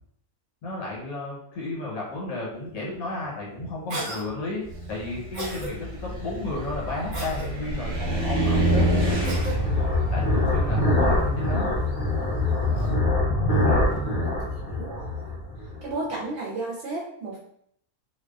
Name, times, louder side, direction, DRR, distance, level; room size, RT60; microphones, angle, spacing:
voice 1, 0.6-9.3 10.1-11.7 12.7-14.3, left 2 dB, 70° left, -4 dB, 1.3 m, -34 dB
Cough, 3.9-4.2 5.3-5.7 7.1-7.5 9.2-9.6, right 1 dB, 90° right, 0.4 m, -33 dB
Car, 4.7-12.9, right 1 dB, 35° right, 0.9 m, -28 dB
sound 1, 6.3-15.9, left 2 dB, 50° left, 0.7 m, -25 dB
voice 2, 14.6-15.4 15.8-17.4, right 2 dB, 65° right, -5 dB, 0.7 m, -34 dB
2.6 x 2.2 x 2.3 m, 0.68 s
omnidirectional pair, 1.6 m